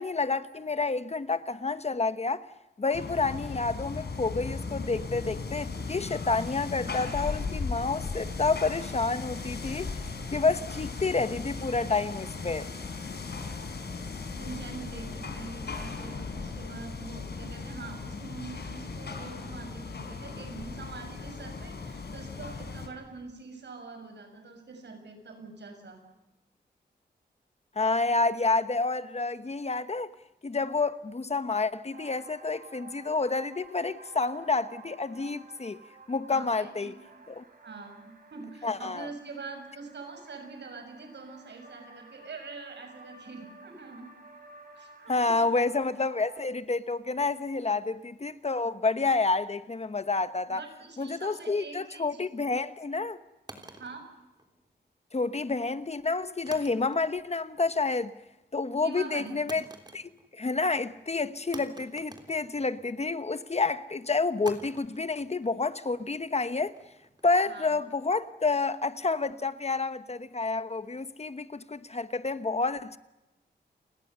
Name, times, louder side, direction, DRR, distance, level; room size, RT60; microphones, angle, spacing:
voice 1, 0.0-2.5 2.8-9.9 10.3-12.7 27.7-30.1 30.4-35.8 36.1-36.9 37.3-37.4 38.6-39.1 45.1-50.6 51.0-53.2 55.1-58.1 58.5-59.6 59.9-66.8 67.2-73.0, left 3 dB, 35° left, 1.1 m, -29 dB
sound 1, 2.9-22.9, left 4 dB, 70° left, 4.0 m, -37 dB
voice 2, 14.4-26.0 36.3-36.9 37.6-44.1 44.7-45.6 47.7-47.8 50.5-52.2 53.8-54.0 58.8-59.4 67.5-67.8, right 4 dB, 80° right, 6.5 m, -44 dB
sound 2, 31.9-46.4, right 3 dB, 55° right, 4.6 m, -52 dB
sound 3, 53.5-54.9 56.5-57.3 57.6-58.1 59.5-60.4 60.7-60.8 61.5-63.1 64.5-67.5, right 2 dB, 25° right, 3.4 m, -50 dB
30.0 x 21.0 x 6.8 m
wide cardioid pair, 90°, 18 cm